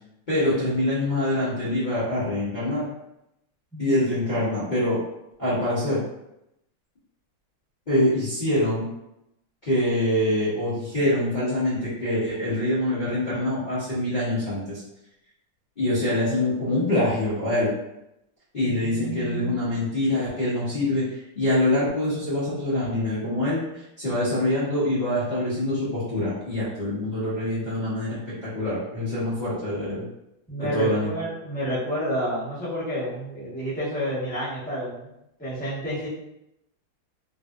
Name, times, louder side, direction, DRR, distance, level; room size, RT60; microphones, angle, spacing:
voice 1, 0.3-2.8 3.8-5.0 5.4-6.0 7.9-8.9 9.6-14.8 15.8-17.7 18.5-30.0 30.6-31.1, left 1 dB, 65° left, -12 dB, 0.4 m, -25 dB
voice 2, 18.6-19.8 30.5-35.1 35.4-36.1, equal, 5° left, -10 dB, 0.7 m, -30 dB
3.2 x 2.6 x 2.4 m, 0.84 s
omnidirectional pair, 2.3 m